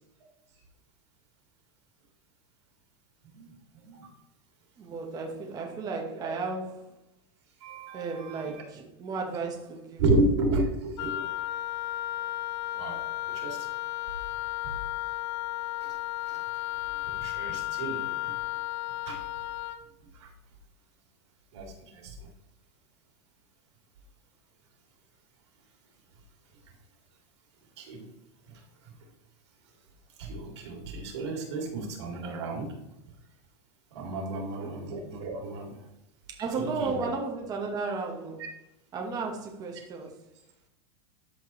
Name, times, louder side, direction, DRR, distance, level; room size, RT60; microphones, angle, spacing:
voice 1, 3.3-4.1 6.1-6.3 7.6-8.6 10.0-11.3 12.7-13.0 13.3-13.7 14.6-14.7 15.8-16.0 16.3-16.4 17.0-18.3 19.1-19.2 20.1-20.3 21.5-22.3 27.8-28.1 28.5-28.6 30.2-32.7 33.9-35.7 36.6-37.1 38.4-38.5, right 2 dB, 85° right, 1 dB, 2.7 m, -32 dB
voice 2, 4.8-6.9 7.9-10.0 34.3-34.7 36.3-38.4 38.9-40.1, right 4 dB, 25° right, 1 dB, 1.1 m, -34 dB
Wind instrument woodwind instrument, 11.0-19.8, left 17 dB, 85° left, 0.7 m, -34 dB
13.5 x 4.6 x 3.1 m, 0.87 s
supercardioid pair, 145°, 14 cm